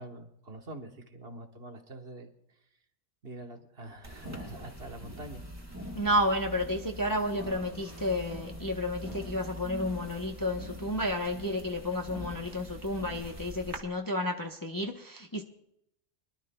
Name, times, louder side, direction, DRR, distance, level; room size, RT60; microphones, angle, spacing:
voice 1, 0.0-2.3 3.2-5.4, right 1 dB, 55° right, 3 dB, 1.5 m, -45 dB
sound 1, 4.0-13.8, equal, 15° right, 1.8 m, -43 dB
voice 2, 6.0-15.4, left 1 dB, 20° left, 2 dB, 0.8 m, -31 dB
25.0 x 12.0 x 2.2 m, 0.79 s
omnidirectional pair, 1.3 m